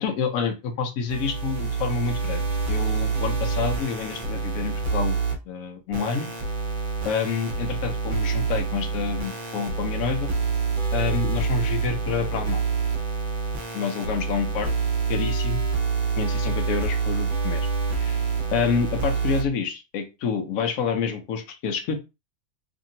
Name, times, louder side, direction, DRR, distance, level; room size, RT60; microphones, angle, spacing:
voice 1, 0.0-2.4 2.7-5.2 5.5-6.3 7.0-10.3 10.9-12.6 13.7-14.7 15.1-15.6 16.2-17.6 18.0-18.2 18.5-21.9, left 6 dB, 75° left, 5 dB, 1.1 m, -28 dB
sound 1, 1.1-5.3 5.9-19.4, right 5 dB, 45° right, 0.7 m, -27 dB
2.9 x 2.6 x 2.7 m, 0.26 s
omnidirectional pair, 1.5 m